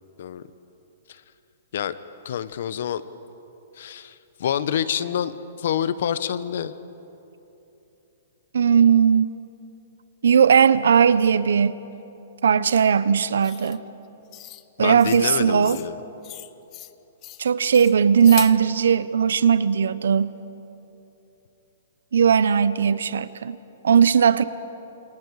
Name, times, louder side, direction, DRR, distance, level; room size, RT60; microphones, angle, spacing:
voice 1, 2.2-3.0 3.7-6.8 14.8-16.0, left 9 dB, 65° left, 14 dB, 1.0 m, -27 dB
voice 2, 8.5-9.3 10.2-11.8 12.4-13.8 14.8-15.8 17.4-20.3 22.1-23.6 23.8-24.4, right 7 dB, 90° right, 16 dB, 0.8 m, -18 dB
sound 1, 12.7-12.8 13.4-13.8 14.3-14.7 15.0-15.3 15.6-15.9 16.2-16.9 17.2-17.4 17.7-18.6, left 16 dB, 25° left, 0.6 m, -38 dB
28.0 x 27.5 x 4.9 m, 3.0 s
hypercardioid pair, 160°, 0 cm